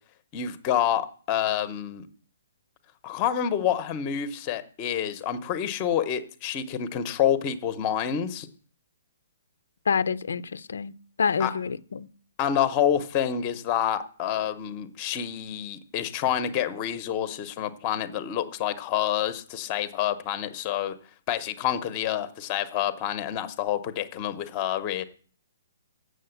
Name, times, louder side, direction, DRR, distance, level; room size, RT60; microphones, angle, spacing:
voice 1, 0.3-2.1 3.0-8.5 11.4-11.5 12.4-21.0 21.3-25.0, left 10 dB, 20° left, 0.7 m, -28 dB
voice 2, 9.9-12.1, left 6 dB, 85° left, 0.5 m, -27 dB
7.7 x 6.4 x 7.8 m
hypercardioid pair, 175°, 0 cm